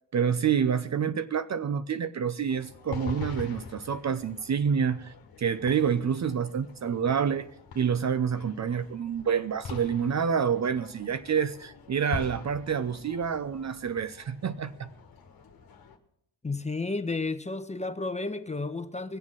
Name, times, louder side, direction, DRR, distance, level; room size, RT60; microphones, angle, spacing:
voice 1, 0.1-5.1 5.4-7.5 7.7-14.9, right 7 dB, 40° right, 12 dB, 0.7 m, -28 dB
sound 1, 2.5-16.0, left 6 dB, 55° left, 1.6 m, -44 dB
voice 2, 16.4-19.2, left 3 dB, 15° left, 10 dB, 1.1 m, -32 dB
20.0 x 7.3 x 6.1 m, 0.76 s
hypercardioid pair, 50°, 44 cm